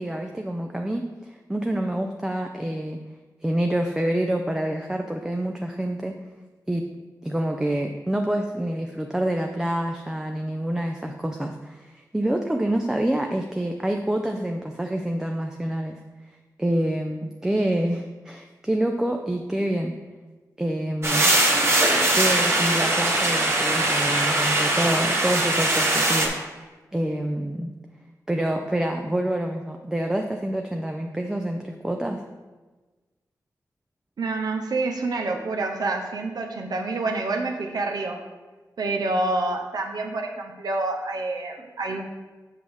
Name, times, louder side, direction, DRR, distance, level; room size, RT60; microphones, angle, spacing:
voice 1, 0.0-3.0 3.4-6.2 6.7-6.9 7.2-16.0 16.6-20.0 20.6-21.3 22.1-27.7 28.3-32.2, right 1 dB, 10° right, 3 dB, 0.4 m, -27 dB
sound 1, 21.0-26.3, right 2 dB, 40° right, 1.2 m, -21 dB
voice 2, 34.2-38.2 38.8-42.0, right 2 dB, 70° right, 2 dB, 0.7 m, -27 dB
7.4 x 6.0 x 3.4 m, 1.3 s
wide cardioid pair, 130°, 7 cm